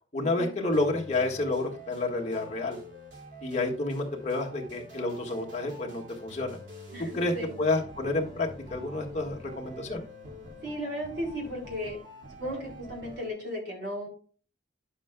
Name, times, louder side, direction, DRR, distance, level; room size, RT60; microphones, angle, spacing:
voice 1, 0.1-2.8 3.4-6.6 7.0-10.1, left 2 dB, 35° left, 0 dB, 1.6 m, -30 dB
sound 1, 0.7-13.3, equal, 85° right, 2.4 m, -46 dB
voice 2, 6.9-7.6 10.6-12.0 12.4-14.1, equal, 60° right, -2 dB, 4.0 m, -35 dB
10.5 x 7.4 x 2.2 m, 0.39 s
head